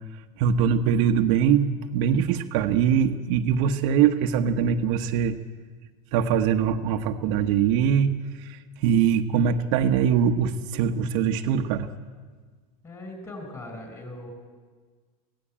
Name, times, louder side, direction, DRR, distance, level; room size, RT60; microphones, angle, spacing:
voice 1, 0.4-5.4 6.1-11.9, right 8 dB, 55° right, 4 dB, 1.2 m, -22 dB
voice 2, 12.8-14.3, left 1 dB, 15° left, 5 dB, 5.0 m, -39 dB
24.5 x 16.5 x 8.8 m, 1.5 s
supercardioid pair, 165°, 20 cm